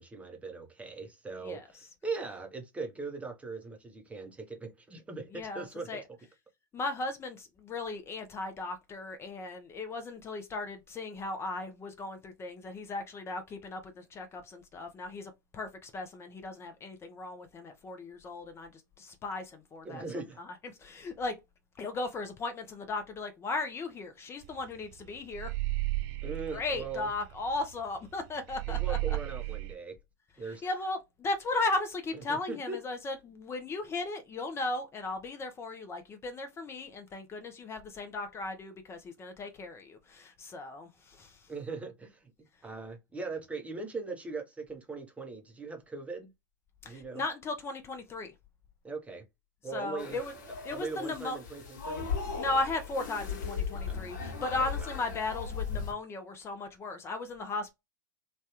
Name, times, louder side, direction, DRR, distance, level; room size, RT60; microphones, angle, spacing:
voice 1, 0.0-6.0 19.8-20.4 26.2-27.1 28.7-30.0 30.4-30.7 32.1-32.8 41.5-42.3 42.6-46.3 46.8-47.2 48.8-49.2 49.6-50.2 50.7-52.3 53.9-54.0 54.5-54.9, right 4 dB, 10° right, 0.7 m, -40 dB
voice 2, 5.3-6.0 6.7-20.0 20.6-21.4 21.8-25.5 26.5-29.0 30.6-41.5 46.8-48.3 49.7-50.3 50.6-51.4 52.4-57.7, left 3 dB, 25° left, 0.6 m, -36 dB
sound 1, 24.4-24.6 24.9-27.8 28.0-28.1 28.5-29.7, right 19 dB, 45° right, 0.3 m, -34 dB
sound 2, 50.0-55.9, left 5 dB, 65° left, 1.1 m, -37 dB
3.1 x 2.3 x 2.8 m
hypercardioid pair, 95°, 10 cm